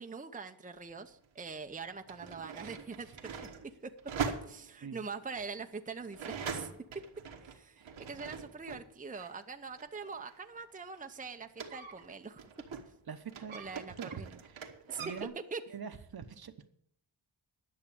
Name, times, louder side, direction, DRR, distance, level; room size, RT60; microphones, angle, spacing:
voice 1, 0.0-3.5 3.8-3.9 4.4-6.7 7.5-12.4 13.5-14.3 14.9-15.0 15.5-15.6, right 5 dB, 15° right, 6 dB, 0.8 m, -43 dB
sound 1, 0.9-1.0 1.8-8.9 9.1-13.0 13.3-15.2, right 6 dB, 85° right, 1.5 m, -42 dB
voice 2, 13.1-14.7 15.0-15.3 15.7-16.7, right 7 dB, 50° right, 9 dB, 1.0 m, -44 dB
11.0 x 6.7 x 8.6 m, 0.70 s
cardioid pair, 70°, 46 cm